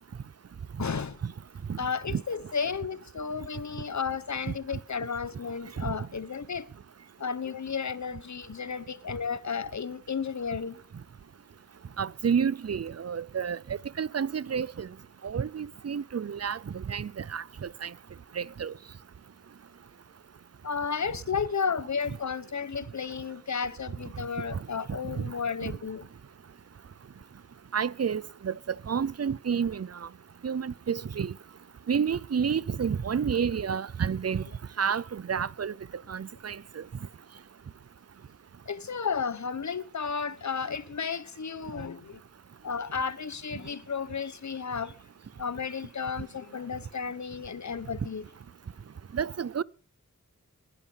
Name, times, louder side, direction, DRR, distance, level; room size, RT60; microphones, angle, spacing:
voice 1, 0.8-1.2 1.8-6.7 7.2-10.8 20.6-26.1 38.7-42.2 42.6-44.9 45.4-48.2, left 6 dB, 60° left, 1.1 m, -33 dB
voice 2, 12.0-13.6 14.0-14.9 15.2-17.9 18.4-18.7 25.2-25.3 25.6-25.7 27.7-30.1 30.4-31.3 31.9-34.4 34.8-35.7 36.1-36.8 49.1-49.6, right 7 dB, 50° right, 0.6 m, -30 dB
20.0 x 11.0 x 5.7 m
wide cardioid pair, 70°, 33 cm